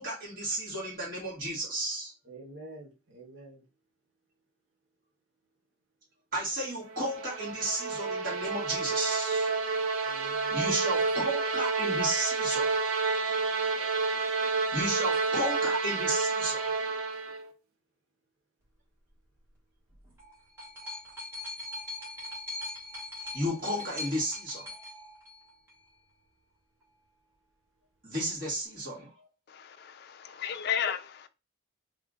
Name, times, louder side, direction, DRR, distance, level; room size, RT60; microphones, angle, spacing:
voice 1, 0.0-2.1 6.3-9.5 10.5-12.8 14.7-16.7 23.3-24.7 28.0-29.3, right 1 dB, 45° right, 2.0 m, -33 dB
voice 2, 2.2-3.6 10.0-10.8, right 2 dB, 65° right, 1.2 m, -48 dB
sound 1, 6.9-17.5, right 4 dB, 85° right, 0.6 m, -29 dB
sound 2, 19.9-25.9 26.8-26.9, left 2 dB, 10° right, 1.5 m, -41 dB
voice 3, 29.5-31.3, left 8 dB, 50° left, 0.3 m, -34 dB
3.4 x 2.6 x 3.7 m
head